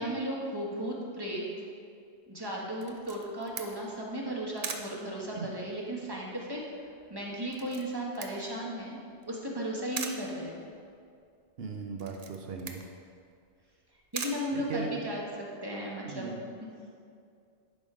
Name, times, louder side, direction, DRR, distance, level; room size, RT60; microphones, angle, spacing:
voice 1, 0.0-1.4 2.3-6.6 7.1-9.0 9.2-10.6 14.1-15.2 15.6-16.3 16.6-16.7, equal, 20° right, -3 dB, 1.2 m, -35 dB
Camera, 2.8-15.3, right 5 dB, 45° right, 0.6 m, -44 dB
voice 2, 11.6-12.8 14.5-15.0 16.1-16.4, right 5 dB, 60° right, 3 dB, 0.9 m, -37 dB
11.0 x 4.3 x 5.0 m, 2.3 s
omnidirectional pair, 1.2 m